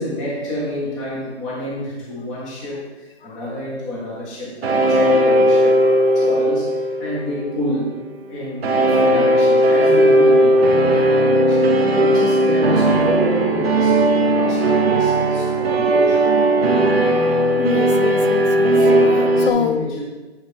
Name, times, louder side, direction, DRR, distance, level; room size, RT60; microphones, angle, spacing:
voice 1, 0.0-5.8 6.1-8.0 8.3-16.3 18.8-20.0, left 1 dB, ahead, -12 dB, 0.5 m, -28 dB
sound 1, 4.6-7.8 8.6-19.5, right 1 dB, 65° right, 1.1 m, -16 dB
voice 2, 16.9-17.3 17.6-18.9 19.4-19.9, left 6 dB, 55° left, 8 dB, 0.5 m, -26 dB
7.9 x 3.1 x 5.1 m, 1.2 s
hypercardioid pair, 150°, 33 cm